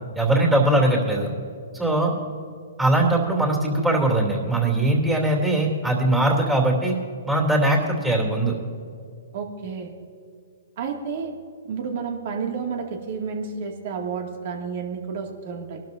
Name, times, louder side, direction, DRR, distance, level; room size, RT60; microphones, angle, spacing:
voice 1, 0.1-1.3 1.7-2.1 2.8-6.9 7.3-8.5, right 1 dB, 10° right, -2 dB, 3.0 m, -21 dB
voice 2, 9.3-9.9 10.8-11.3 11.7-15.8, right 5 dB, 55° right, 2 dB, 2.2 m, -31 dB
21.5 x 12.5 x 2.7 m, 2.3 s
hypercardioid pair, 140°, 0 cm